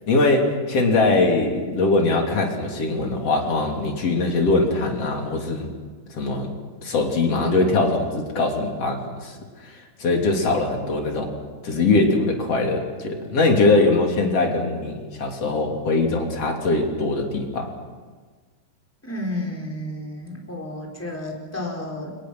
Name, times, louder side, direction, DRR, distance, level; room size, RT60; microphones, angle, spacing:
voice 1, 0.1-5.7 6.1-6.5 6.8-9.4 9.6-11.3 11.6-17.7, left 3 dB, 35° left, 1 dB, 3.6 m, -21 dB
voice 2, 19.0-22.2, left 1 dB, 5° left, -2 dB, 3.8 m, -31 dB
29.5 x 25.0 x 6.2 m, 1.4 s
omnidirectional pair, 5.2 m